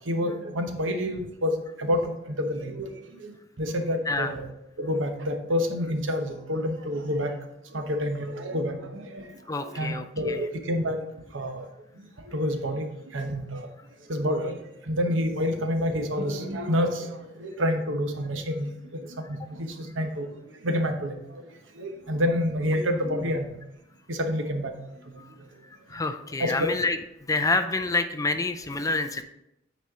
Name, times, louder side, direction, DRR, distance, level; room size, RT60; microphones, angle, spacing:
voice 1, 0.1-2.9 3.2-3.3 3.6-4.5 4.8-7.3 7.7-9.2 9.6-11.0 11.3-11.6 12.3-12.9 13.1-13.7 14.1-14.6 14.9-20.3 20.6-21.2 21.8-23.5 24.1-24.7 26.4-26.7, equal, 85° right, 5 dB, 1.0 m, -28 dB
voice 2, 9.5-10.4 23.1-23.2 25.9-27.0 27.3-29.2, left 3 dB, 20° left, 9 dB, 0.4 m, -27 dB
9.3 x 4.3 x 3.6 m, 0.85 s
head